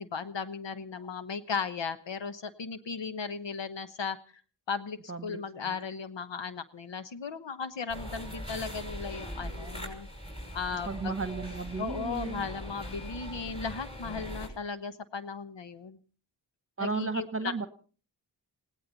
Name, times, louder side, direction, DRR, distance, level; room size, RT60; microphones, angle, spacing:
voice 1, 0.0-4.2 4.7-10.1 10.5-11.2 11.8-16.0 16.8-17.5, left 5 dB, 85° left, 11 dB, 1.2 m, -36 dB
sound 1, 7.9-14.5, equal, 15° left, 6.0 m, -41 dB
voice 2, 10.9-12.5 16.8-17.7, right 4 dB, 30° right, 10 dB, 1.1 m, -34 dB
20.5 x 17.5 x 4.0 m, 0.39 s
wide cardioid pair, 95°, 43 cm